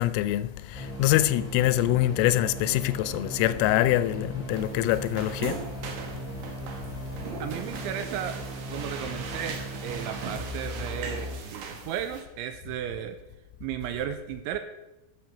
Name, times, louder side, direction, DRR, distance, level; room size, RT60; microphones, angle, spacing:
voice 1, 0.0-5.6, left 15 dB, 90° left, 3.2 m, -24 dB
sound 1, 0.7-11.4, right 2 dB, 20° right, 3.0 m, -38 dB
sound 2, 4.5-12.2, right 5 dB, 65° right, 2.1 m, -40 dB
voice 2, 7.4-8.4 8.7-13.2 13.6-14.6, right 10 dB, 85° right, 2.8 m, -34 dB
11.5 x 7.2 x 5.8 m
omnidirectional pair, 5.7 m